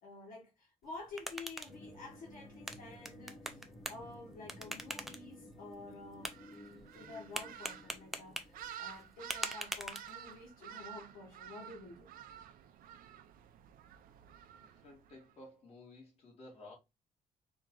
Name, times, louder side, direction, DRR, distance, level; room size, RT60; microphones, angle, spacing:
voice 1, 0.0-3.6 3.9-12.1, left 3 dB, 85° left, 1.6 m, -50 dB
sound 1, 0.8-10.5, right 1 dB, ahead, 0.4 m, -46 dB
sound 2, 1.7-9.2, left 1 dB, 20° left, 1.8 m, -55 dB
sound 3, 6.2-15.3, right 9 dB, 85° right, 0.5 m, -51 dB
voice 2, 14.5-16.7, left 2 dB, 45° left, 2.4 m, -54 dB
4.3 x 2.9 x 3.8 m
cardioid pair, 165°, 14 cm